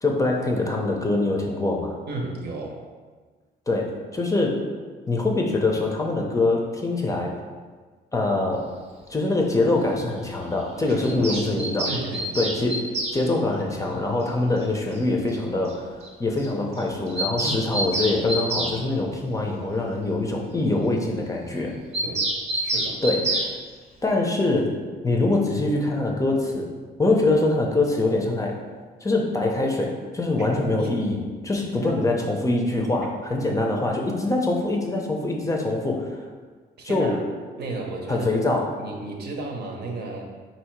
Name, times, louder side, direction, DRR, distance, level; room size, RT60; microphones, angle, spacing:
voice 1, 0.0-2.0 3.7-4.6 5.1-7.4 8.1-8.7 9.1-11.9 12.4-12.9 13.1-21.7 23.0-23.5 24.0-24.8 25.0-26.7 27.0-28.6 29.0-36.2 36.8-37.2 38.1-38.7, left 2 dB, 20° left, 0 dB, 0.5 m, -24 dB
voice 2, 2.1-2.8 10.9-12.4 17.4-17.7 22.0-22.3 22.6-23.0 30.4-30.5 30.8-30.9 31.8-32.2 33.0-33.1 36.8-37.2 37.6-38.3 38.8-40.2, right 2 dB, 65° right, 0 dB, 0.8 m, -34 dB
Bird vocalization bird call bird song, 11.0-13.2 14.6-14.7 15.0-15.1 15.3-15.4 15.7-15.8 16.0-16.1 16.4-16.5 16.8-18.8 21.9-23.5, right 1 dB, 35° right, 0.6 m, -27 dB
4.3 x 2.7 x 4.5 m, 1.5 s
cardioid pair, 130°, 18 cm